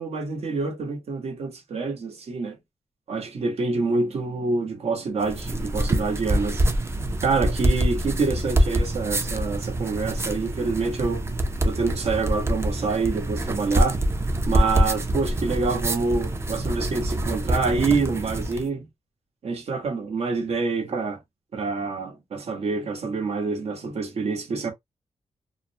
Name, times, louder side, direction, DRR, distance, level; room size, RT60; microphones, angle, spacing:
voice 1, 0.0-2.6 3.1-6.6 7.2-11.2 11.6-14.0 14.5-18.9 19.4-21.2 21.5-24.7, right 4 dB, 65° right, 0.9 m, -26 dB
sound 1, 5.2-18.7, right 1 dB, 25° right, 0.4 m, -25 dB
2.4 x 2.0 x 2.6 m
wide cardioid pair, 130°, 11 cm